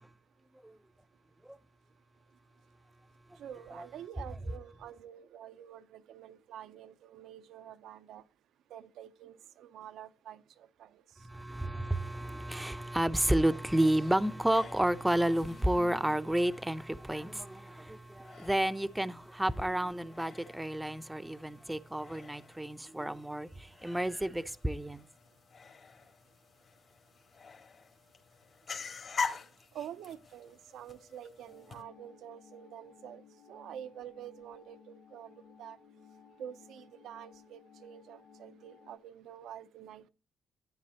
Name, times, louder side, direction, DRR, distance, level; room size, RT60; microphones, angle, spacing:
voice 1, 3.4-8.2 8.7-11.0 29.7-35.8 36.4-40.1, right 10 dB, 80° right, 0.7 m, -48 dB
voice 2, 11.2-25.0, right 1 dB, 5° right, 0.6 m, -31 dB
sound 1, 13.7-31.8, left 5 dB, 50° left, 1.9 m, -46 dB
sound 2, 31.5-39.0, left 6 dB, 85° left, 2.0 m, -58 dB
12.0 x 9.2 x 2.9 m
cardioid pair, 90°, 0 cm